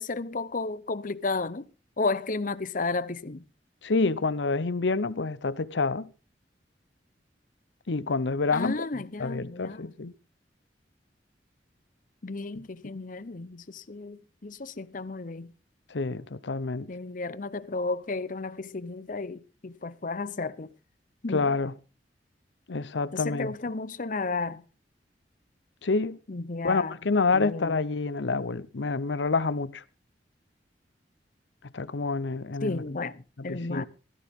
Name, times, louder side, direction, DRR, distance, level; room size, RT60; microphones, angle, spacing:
voice 1, 0.0-1.7 2.0-3.4 8.5-9.9 12.2-15.5 16.9-20.7 21.2-21.5 23.1-24.6 26.3-27.0 27.3-27.8 32.6-33.8, left 3 dB, 50° left, 0.8 m, -33 dB
voice 2, 3.8-6.1 7.9-8.8 9.2-10.1 12.9-13.0 15.9-16.9 21.3-21.7 22.7-23.5 25.8-26.2 26.6-29.8 31.7-32.8 33.5-33.8, left 3 dB, 90° left, 0.8 m, -28 dB
16.5 x 13.5 x 3.6 m
head